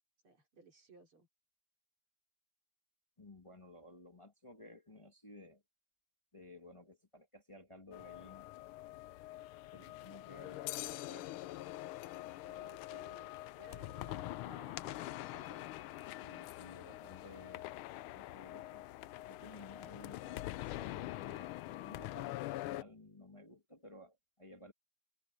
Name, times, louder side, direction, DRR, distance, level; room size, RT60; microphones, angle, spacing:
voice 1, 0.2-1.3 12.4-15.8, right 4 dB, 85° right, 4.7 m, -60 dB
voice 2, 3.2-5.6 6.3-8.5 9.7-11.3 16.2-17.7 18.1-18.9 19.3-24.7, left 2 dB, 15° left, 1.5 m, -56 dB
sound 1, 7.9-22.8, left 16 dB, 85° left, 1.5 m, -44 dB
sound 2, 8.9-22.8, right 4 dB, 60° right, 5.7 m, -79 dB
omnidirectional pair, 2.3 m